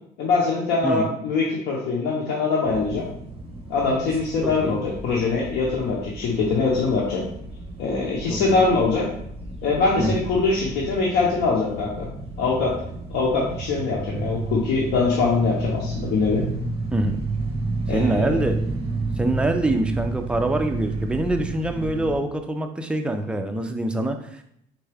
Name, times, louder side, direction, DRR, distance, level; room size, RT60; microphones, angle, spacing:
voice 1, 0.2-3.1 3.7-7.2 7.8-9.1 9.6-12.1 12.4-12.7 13.1-16.4 17.9-18.4, left 4 dB, 80° left, -4 dB, 0.9 m, -23 dB
sound 1, 2.6-22.2, right 2 dB, 35° right, 1.0 m, -31 dB
voice 2, 4.4-4.8 8.3-8.7 10.0-10.2 16.9-17.2 17.9-18.6 19.2-24.4, right 1 dB, 5° right, 5 dB, 0.4 m, -25 dB
4.3 x 3.4 x 3.4 m, 0.71 s
cardioid pair, 110°, 17 cm